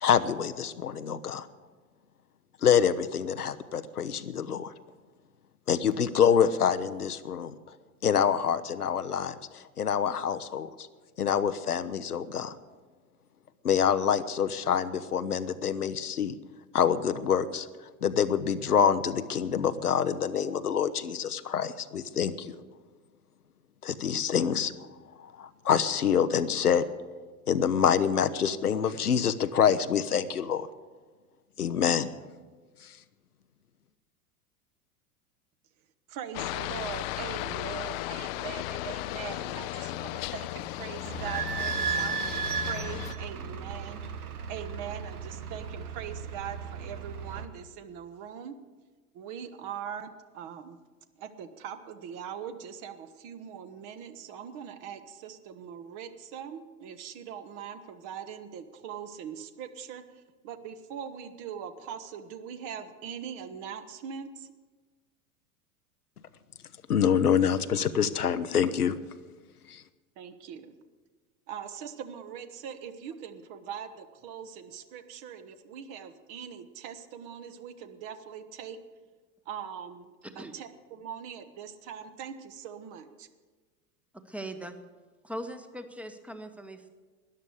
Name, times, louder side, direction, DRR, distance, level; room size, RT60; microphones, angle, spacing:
voice 1, 0.0-1.5 2.6-4.7 5.7-7.5 8.0-10.7 11.2-12.6 13.6-16.4 16.7-17.7 18.0-22.5 23.8-24.7 25.4-26.8 27.5-30.7 31.6-32.1 32.8-32.9 66.9-68.9 69.7-69.8, left 8 dB, 85° left, 12 dB, 0.8 m, -26 dB
voice 2, 36.1-44.0 44.5-48.5 49.1-50.8 51.2-64.5 70.2-70.8 71.5-78.8 79.5-80.1 80.3-83.3, right 8 dB, 45° right, 10 dB, 1.2 m, -41 dB
Aircraft, 36.3-43.1, left 16 dB, 45° left, 0.5 m, -35 dB
Idling / Squeak, 41.0-47.4, right 6 dB, 80° right, 1.1 m, -35 dB
voice 3, 80.2-80.5 84.3-84.8 85.2-86.9, right 1 dB, 5° right, 9 dB, 1.0 m, -40 dB
13.0 x 10.5 x 8.1 m, 1.4 s
figure-of-eight pair, 85°, 44 cm